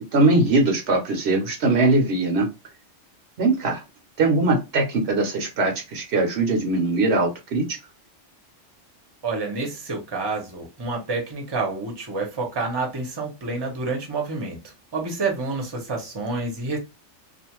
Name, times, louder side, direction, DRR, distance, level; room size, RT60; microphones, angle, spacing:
voice 1, 0.1-2.5 3.4-3.8 4.2-7.8, right 2 dB, 65° right, 0.9 m, -21 dB
voice 2, 9.2-14.6 14.9-16.8, right 3 dB, 25° right, 0.7 m, -28 dB
2.5 x 2.4 x 2.9 m
omnidirectional pair, 1.2 m